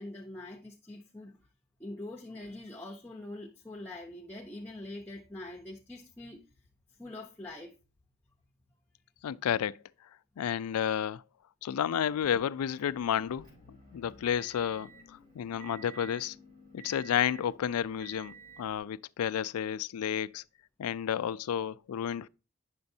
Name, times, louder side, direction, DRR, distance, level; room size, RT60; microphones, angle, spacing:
voice 1, 0.0-1.4 1.8-6.5 7.0-7.8, left 1 dB, 10° left, 0.7 m, -44 dB
voice 2, 9.2-9.8 10.4-11.2 11.6-13.5 13.9-16.4 16.7-20.4 20.8-22.3, left 9 dB, 90° left, 0.3 m, -31 dB
Motor vehicle (road) / Engine, 12.7-18.8, right 4 dB, 40° right, 4.3 m, -53 dB
9.6 x 6.8 x 2.7 m
head